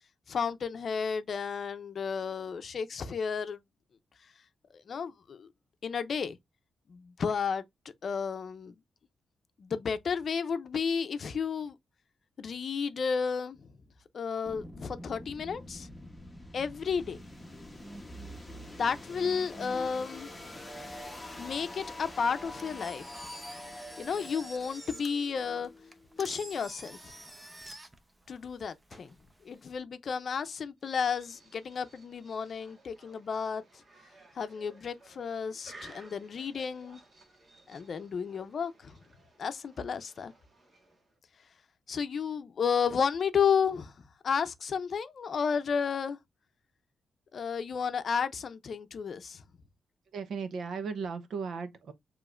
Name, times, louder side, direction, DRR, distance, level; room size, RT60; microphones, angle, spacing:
voice 1, 0.3-3.6 4.7-5.5 5.8-6.4 6.9-8.7 9.6-11.8 12.4-13.7 14.1-15.9 16.5-17.2 18.7-20.5 21.4-23.3 24.0-25.7 26.2-27.1 28.3-29.1 29.4-33.6 34.3-37.0 37.7-39.0 39.4-40.3 41.9-43.9 44.2-46.2 47.3-49.4, left 6 dB, 50° left, 0.6 m, -32 dB
sound 1, 14.5-27.3, left 1 dB, 10° left, 1.1 m, -45 dB
Engine, 22.4-29.8, right 1 dB, 15° right, 0.8 m, -49 dB
sound 2, 30.8-41.2, right 2 dB, 40° right, 1.6 m, -57 dB
voice 2, 50.1-51.9, right 5 dB, 70° right, 0.9 m, -36 dB
6.8 x 3.1 x 2.5 m
cardioid pair, 120°, 0 cm